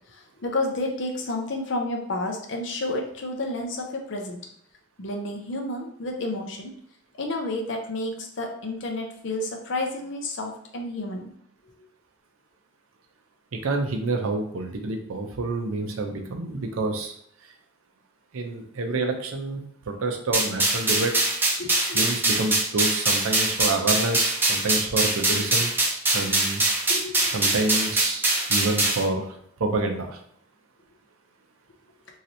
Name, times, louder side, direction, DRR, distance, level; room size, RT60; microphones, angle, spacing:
voice 1, 0.1-4.4 5.0-6.7 7.2-11.3 21.6-22.1 26.9-27.6, left 2 dB, 60° left, 2 dB, 0.6 m, -31 dB
voice 2, 13.5-17.1 18.3-19.6 19.9-21.1 21.9-25.7 26.1-26.6 27.3-28.2 28.5-30.2, right 2 dB, 80° right, 4 dB, 0.5 m, -28 dB
sound 1, 20.3-29.0, right 2 dB, 10° right, 0.5 m, -23 dB
3.1 x 2.8 x 2.7 m, 0.67 s
head